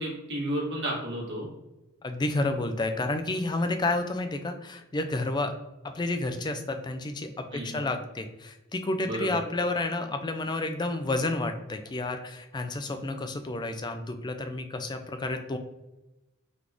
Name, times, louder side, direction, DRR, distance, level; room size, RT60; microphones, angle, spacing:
voice 1, 0.0-1.5 7.5-7.8 9.0-9.4, right 1 dB, 55° right, -3 dB, 1.5 m, -32 dB
voice 2, 2.0-5.5 5.8-15.6, left 2 dB, 20° left, 6 dB, 0.4 m, -30 dB
4.1 x 3.0 x 3.4 m, 0.99 s
head